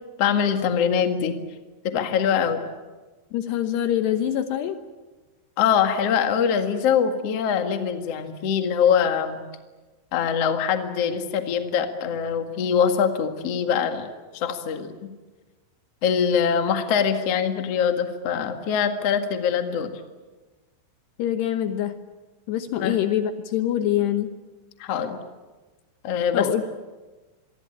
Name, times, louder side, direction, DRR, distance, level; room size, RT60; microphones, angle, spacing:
voice 1, 0.2-1.4 1.8-2.6 5.6-9.4 10.1-14.1 14.3-15.1 16.0-19.9 22.8-23.0 24.8-25.2 26.0-26.5, left 7 dB, 50° left, 6 dB, 2.0 m, -23 dB
voice 2, 3.3-4.8 21.2-22.0 22.5-24.4 26.3-26.6, left 11 dB, 70° left, 8 dB, 2.9 m, -24 dB
26.5 x 22.0 x 8.9 m, 1.2 s
omnidirectional pair, 5.5 m